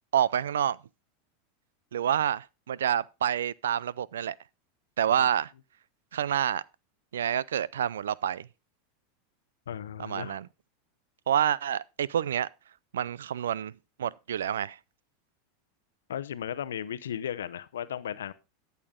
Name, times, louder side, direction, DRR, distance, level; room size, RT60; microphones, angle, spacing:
voice 1, 0.1-0.8 1.9-4.4 5.0-5.5 6.1-6.6 7.1-8.5 10.0-10.5 11.3-12.5 12.9-13.7 14.0-14.8, right 9 dB, 85° right, 0.4 m, -28 dB
voice 2, 9.7-10.4 16.1-18.3, left 9 dB, 85° left, 0.7 m, -35 dB
13.0 x 7.0 x 3.7 m
hypercardioid pair, 105°, 0 cm